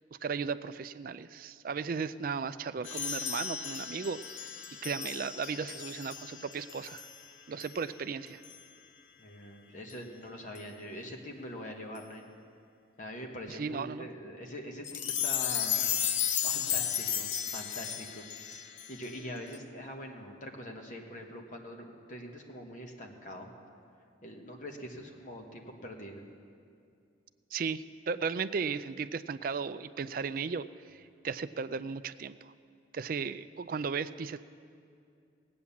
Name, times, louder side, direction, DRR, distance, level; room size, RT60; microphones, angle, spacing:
voice 1, 0.2-4.2 4.8-7.1 7.5-8.4 13.5-14.1 27.5-32.5 32.9-34.4, right 5 dB, 45° right, 13 dB, 0.3 m, -35 dB
sound 1, 2.8-7.3 7.6-7.8 8.4-8.6 9.9-10.0 10.6-10.7 12.0-12.1 14.8-19.6, left 9 dB, 70° left, 0.7 m, -34 dB
voice 2, 9.2-12.2 13.0-15.9 16.4-23.5 24.2-26.3, equal, 40° left, 2 dB, 1.3 m, -44 dB
18.0 x 8.7 x 7.1 m, 2.4 s
head